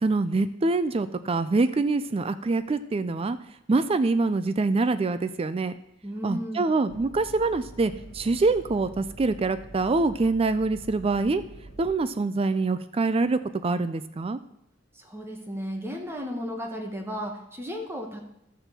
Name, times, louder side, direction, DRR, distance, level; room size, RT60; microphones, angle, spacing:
voice 1, 0.0-3.4 3.7-5.7 6.2-11.4 11.8-14.4, right 3 dB, 30° right, 12 dB, 0.4 m, -25 dB
voice 2, 6.0-6.7 14.9-18.2, equal, 10° right, 2 dB, 1.2 m, -34 dB
sound 1, 6.9-11.9, right 1 dB, 65° left, 1.5 m, -45 dB
13.5 x 4.5 x 6.7 m, 0.80 s
head